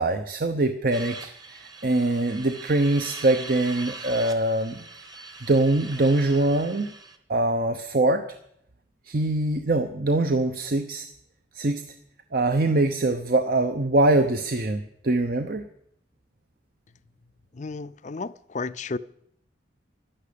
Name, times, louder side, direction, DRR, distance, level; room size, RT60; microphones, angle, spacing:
voice 1, 0.0-4.8 5.5-6.9 7.3-8.2 9.1-11.1 11.5-11.8 12.3-15.7, right 2 dB, 50° right, 0.8 m, -23 dB
sound 1, 0.9-7.2, right 3 dB, 20° right, 1.1 m, -41 dB
voice 2, 17.5-19.0, left 3 dB, 40° left, 0.5 m, -33 dB
11.5 x 11.5 x 8.5 m
head